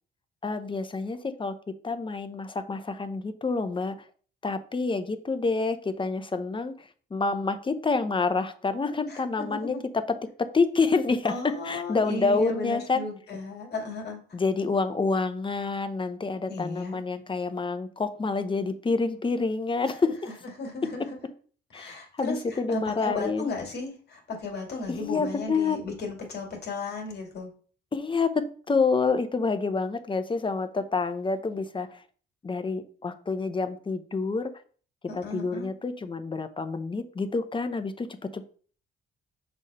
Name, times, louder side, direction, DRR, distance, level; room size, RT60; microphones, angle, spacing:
voice 1, 0.4-1.6 1.8-4.0 4.4-10.0 10.4-11.3 11.6-13.0 14.3-20.2 21.7-23.5 24.9-25.8 27.9-31.9 32.4-34.5 35.1-38.1 38.3-38.4, left 4 dB, 25° left, 10 dB, 0.8 m, -28 dB
voice 2, 9.1-9.8 11.2-14.4 16.5-17.0 19.9-20.1 20.6-21.2 21.7-27.5 35.1-35.7, left 3 dB, 55° left, 1 dB, 2.4 m, -35 dB
6.2 x 3.3 x 5.5 m, 0.43 s
cardioid pair, 90°, 20 cm